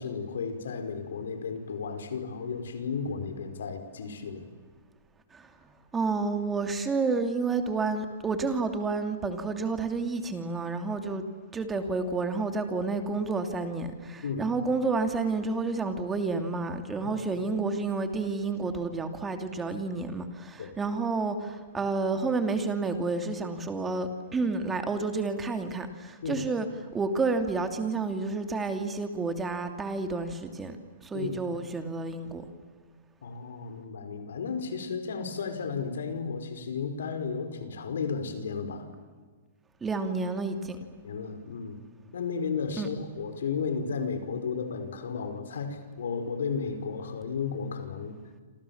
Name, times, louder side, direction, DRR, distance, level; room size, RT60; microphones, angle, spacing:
voice 1, 0.0-4.4 14.2-14.5 20.6-20.7 26.2-26.5 31.1-31.3 33.2-38.9 41.0-41.8 42.1-48.2, left 5 dB, 75° left, 7 dB, 5.2 m, -33 dB
voice 2, 5.9-11.2 11.5-26.7 26.9-30.8 31.0-32.4 39.8-40.8 42.8-42.9, right 3 dB, 15° right, 6 dB, 2.8 m, -30 dB
28.0 x 27.5 x 7.3 m, 1.5 s
hypercardioid pair, 135°, 0 cm